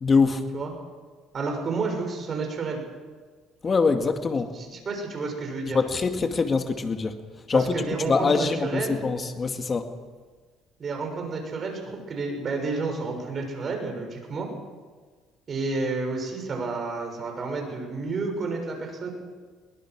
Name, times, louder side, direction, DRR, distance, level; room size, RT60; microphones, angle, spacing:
voice 1, 0.0-0.5 3.6-4.5 5.7-7.2 7.5-9.9, left 4 dB, 30° left, 6 dB, 2.2 m, -24 dB
voice 2, 1.3-2.8 4.5-5.8 7.5-9.0 10.8-14.5 15.5-19.1, right 3 dB, 40° right, 3 dB, 6.6 m, -30 dB
22.5 x 19.5 x 6.3 m, 1.4 s
supercardioid pair, 95°, 0 cm